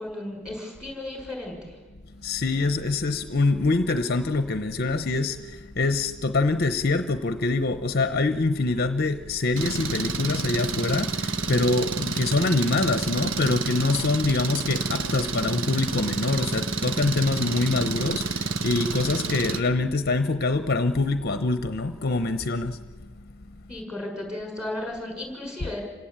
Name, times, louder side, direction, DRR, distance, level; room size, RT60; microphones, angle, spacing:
voice 1, 0.0-1.8 23.7-25.8, left 1 dB, 5° right, 1 dB, 6.4 m, -34 dB
voice 2, 2.2-22.8, left 3 dB, 45° left, 10 dB, 0.8 m, -25 dB
Engine, 9.6-19.6, right 3 dB, 65° right, 1.2 m, -29 dB
27.5 x 17.0 x 8.7 m, 1.3 s
head